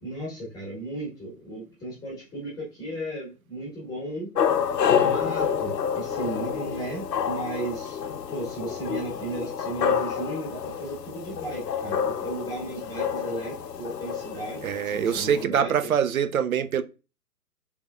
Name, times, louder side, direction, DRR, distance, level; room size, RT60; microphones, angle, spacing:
voice 1, 0.0-4.3 4.7-8.0 8.3-15.9, right 1 dB, 5° left, 1.5 m, -35 dB
sound 1, 4.3-15.4, left 7 dB, 80° left, 0.6 m, -28 dB
voice 2, 14.6-16.8, right 8 dB, 60° right, 0.6 m, -24 dB
4.7 x 3.5 x 2.4 m
figure-of-eight pair, 135°, 49 cm